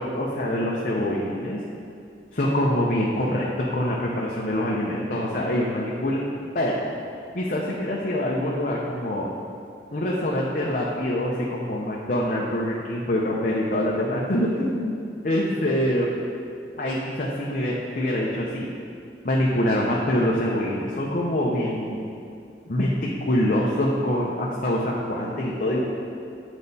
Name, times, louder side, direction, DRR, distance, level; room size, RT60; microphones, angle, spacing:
voice 1, 0.0-1.6 2.3-6.2 6.5-6.8 7.3-9.3 9.9-15.0 15.2-16.1 16.8-18.7 19.2-22.0 22.7-25.8, left 1 dB, 50° left, -3 dB, 0.7 m, -25 dB
9.0 x 5.2 x 4.1 m, 2.5 s
head